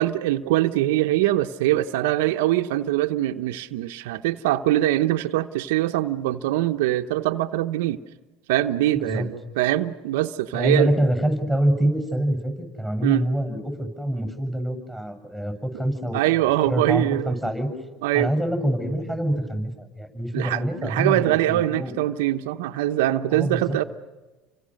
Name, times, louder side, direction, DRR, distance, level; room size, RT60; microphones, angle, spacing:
voice 1, 0.0-8.0 8.5-10.9 13.0-13.3 16.1-17.4 18.0-18.3 20.3-23.8, right 15 dB, 80° right, 7 dB, 0.8 m, -23 dB
voice 2, 10.5-16.2 16.6-17.7 18.1-21.9 23.3-23.8, right 1 dB, 5° left, 5 dB, 7.6 m, -25 dB
29.5 x 25.5 x 6.5 m, 1.2 s
supercardioid pair, 90°, 0 cm